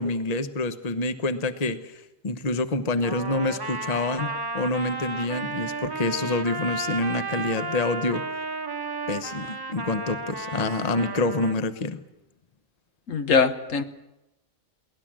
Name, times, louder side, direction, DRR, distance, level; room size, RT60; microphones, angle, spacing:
voice 1, 0.0-8.3 9.1-12.0, left 2 dB, 30° left, 10 dB, 1.1 m, -27 dB
Trumpet, 3.0-11.6, right 3 dB, 20° right, 0.9 m, -33 dB
voice 2, 13.1-13.8, left 5 dB, 70° left, 10 dB, 1.5 m, -22 dB
23.0 x 18.0 x 7.6 m, 0.92 s
omnidirectional pair, 1.4 m